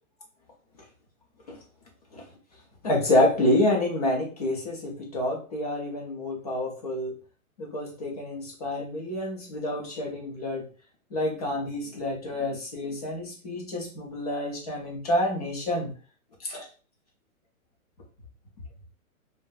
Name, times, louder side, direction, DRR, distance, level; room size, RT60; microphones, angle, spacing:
voice 1, 2.8-7.1 7.6-10.6 11.1-15.9 16.4-16.7, left 1 dB, 30° left, -1 dB, 0.6 m, -28 dB
3.7 x 2.1 x 2.5 m, 0.37 s
hypercardioid pair, 170°, 43 cm